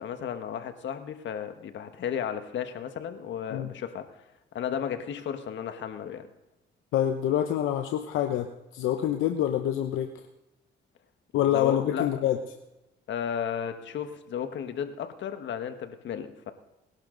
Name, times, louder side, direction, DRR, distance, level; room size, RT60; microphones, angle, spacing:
voice 1, 0.0-4.1 4.5-6.3 11.4-12.2 13.1-16.5, left 8 dB, 70° left, 8 dB, 1.5 m, -34 dB
voice 2, 6.9-8.5 8.7-10.1 11.3-12.4, left 11 dB, 85° left, 6 dB, 0.9 m, -26 dB
19.5 x 11.5 x 3.9 m, 0.94 s
cardioid pair, 90°, 20 cm